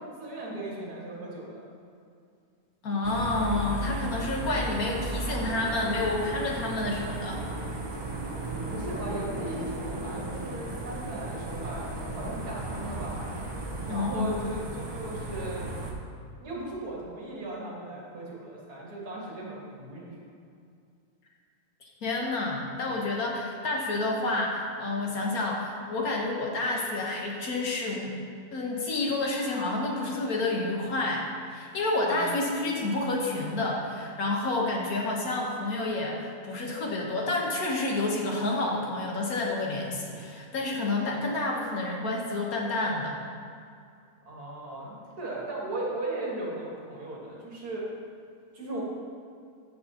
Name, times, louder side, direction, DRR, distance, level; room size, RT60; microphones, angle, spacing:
voice 1, 0.0-1.7 8.7-13.4 13.9-15.7 16.4-20.2 32.0-32.4 44.3-47.9 48.5-48.8, right 1 dB, 80° right, -4 dB, 2.4 m, -37 dB
voice 2, 2.8-7.4 13.9-14.3 21.8-28.2 28.5-43.2, left 2 dB, 70° left, -1 dB, 1.7 m, -29 dB
sound 1, 3.0-15.9, right 2 dB, 25° right, 0.6 m, -35 dB
14.0 x 6.3 x 2.9 m, 2.4 s
omnidirectional pair, 1.6 m